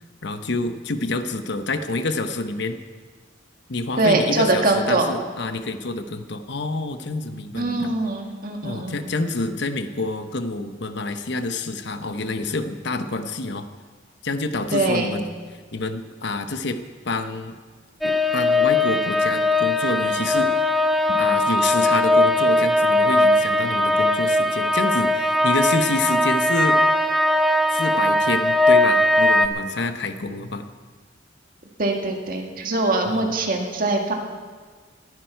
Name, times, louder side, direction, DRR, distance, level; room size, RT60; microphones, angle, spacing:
voice 1, 0.2-2.8 3.7-7.9 8.6-13.7 14.2-16.8 17.0-17.5 18.0-20.5 21.2-26.8 27.7-30.7 33.0-33.3, left 3 dB, 65° left, 9 dB, 0.9 m, -27 dB
voice 2, 4.0-5.1 7.5-9.1 14.7-15.1 31.8-34.1, right 2 dB, 50° right, 2 dB, 1.8 m, -22 dB
sound 1, 18.0-29.5, left 1 dB, ahead, 0.6 m, -19 dB
19.5 x 11.0 x 4.6 m, 1.5 s
head